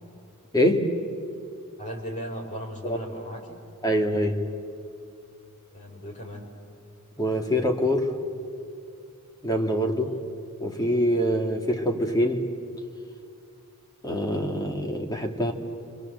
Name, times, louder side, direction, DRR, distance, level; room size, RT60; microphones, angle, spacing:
voice 1, 0.5-0.9 2.8-3.0 3.8-4.4 7.2-8.1 9.4-10.2 10.6-12.5 14.0-15.5, equal, 15° left, 3 dB, 2.2 m, -24 dB
voice 2, 1.8-3.6 5.7-6.5 10.0-10.2, equal, 35° left, -1 dB, 5.2 m, -37 dB
29.0 x 25.5 x 8.0 m, 2.5 s
head